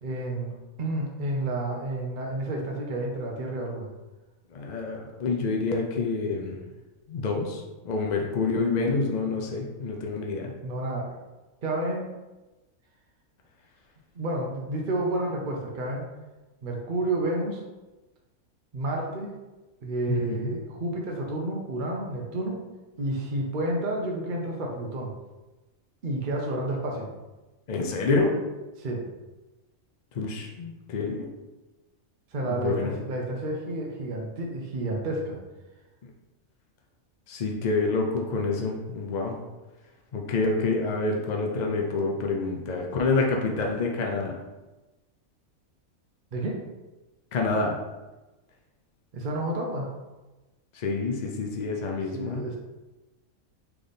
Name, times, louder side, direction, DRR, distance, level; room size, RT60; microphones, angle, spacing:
voice 1, 0.0-3.9 10.6-11.2 11.6-12.1 14.1-16.1 16.6-17.6 18.7-19.3 19.8-22.6 23.0-25.1 26.0-27.1 28.8-29.0 32.3-35.4 46.3-46.6 49.1-49.9 52.1-52.6, right 1 dB, 50° right, -1 dB, 0.6 m, -30 dB
voice 2, 4.5-6.6 7.1-10.5 20.1-20.6 27.7-28.4 30.2-31.3 32.4-32.9 37.3-39.4 40.1-44.3 47.3-47.8 50.7-52.4, left 3 dB, 70° left, 1 dB, 0.4 m, -27 dB
3.5 x 3.3 x 4.0 m, 1.1 s
omnidirectional pair, 1.4 m